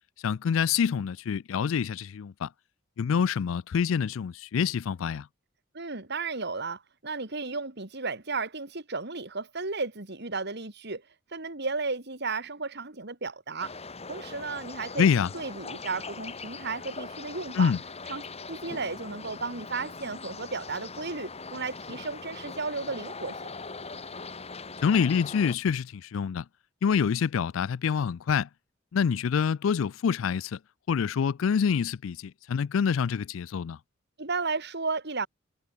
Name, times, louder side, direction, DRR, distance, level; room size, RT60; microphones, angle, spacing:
voice 1, 0.2-2.5 3.0-5.3 15.0-15.3 17.6-17.8 24.8-26.4 26.8-28.5 28.9-30.6 30.9-33.8, left 6 dB, 80° left, 0.4 m, -26 dB
voice 2, 5.7-11.0 11.3-13.8 14.1-17.7 18.1-23.5 34.2-35.3, right 4 dB, 60° right, 3.2 m, -34 dB
sound 1, 13.6-25.5, left 4 dB, 30° left, 3.3 m, -41 dB
head